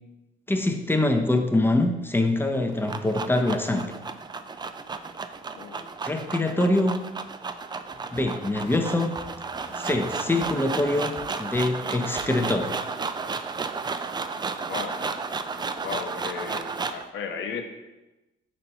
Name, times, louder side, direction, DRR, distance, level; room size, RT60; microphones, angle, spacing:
voice 1, 0.5-3.9 6.0-7.0 8.1-9.1 9.8-11.1 11.4-12.7, left 2 dB, 10° left, 5 dB, 0.6 m, -24 dB
sound 1, 2.5-17.1, right 4 dB, 20° right, 0.3 m, -33 dB
voice 2, 5.5-5.9 14.7-15.0 15.8-17.7, left 6 dB, 75° left, 5 dB, 0.8 m, -35 dB
sound 2, 7.8-12.9, left 2 dB, 35° left, 1.4 m, -49 dB
4.4 x 4.2 x 5.3 m, 1.0 s
cardioid pair, 90°, 20 cm